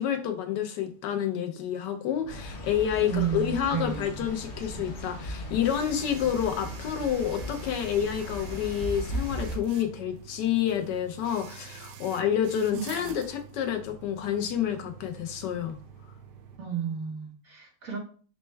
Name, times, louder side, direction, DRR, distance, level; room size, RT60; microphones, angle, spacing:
voice 1, 0.0-15.8, left 9 dB, 90° left, 1.3 m, -29 dB
sound 1, 2.2-16.6, right 8 dB, 90° right, 1.2 m, -47 dB
sound 2, 2.3-9.6, equal, 55° left, 0.8 m, -37 dB
voice 2, 3.0-4.3 12.7-13.2 16.6-18.0, right 7 dB, 55° right, 1.5 m, -32 dB
4.2 x 2.2 x 4.3 m
omnidirectional pair, 1.8 m